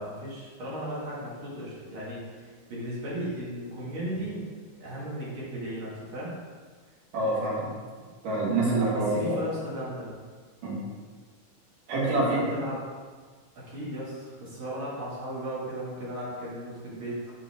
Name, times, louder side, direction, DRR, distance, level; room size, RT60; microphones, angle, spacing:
voice 1, 0.0-4.5 4.7-6.3 8.7-10.1 12.1-12.8 13.7-17.3, equal, 45° right, -7 dB, 2.4 m, -36 dB
voice 2, 7.1-7.7 8.2-9.4 10.6-10.8 11.9-12.4, right 2 dB, 70° right, -6 dB, 3.5 m, -26 dB
8.1 x 5.5 x 3.6 m, 1.5 s
omnidirectional pair, 3.9 m